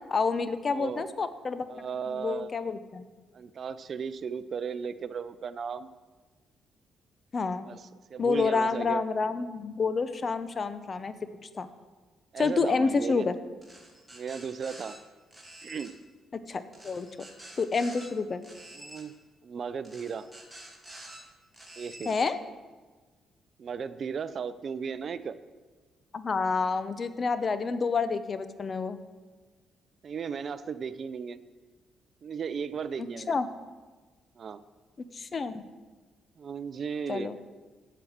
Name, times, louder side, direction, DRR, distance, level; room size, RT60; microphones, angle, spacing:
voice 1, 0.1-3.1 7.3-7.7 8.2-11.1 11.6-11.7 12.4-13.3 16.5-17.1 17.6-18.4 22.0-22.4 26.1-29.0 33.3-33.5 35.1-35.6 37.1-37.4, left 4 dB, 40° left, 12 dB, 0.7 m, -29 dB
voice 2, 0.7-1.1 1.7-2.6 3.3-5.9 7.7-9.0 12.3-13.3 14.1-15.0 15.6-15.9 18.7-19.2 19.4-20.3 21.8-22.1 23.6-25.4 30.0-31.4 32.2-33.4 34.4-34.6 36.4-37.3, right 6 dB, 50° right, 14 dB, 0.5 m, -36 dB
sound 1, 13.6-15.0 15.3-15.9 16.7-18.1 18.4-19.0 19.8-21.2 21.5-22.1, right 1 dB, 5° right, 2.5 m, -48 dB
7.9 x 7.9 x 7.2 m, 1.3 s
cardioid pair, 90°, 0 cm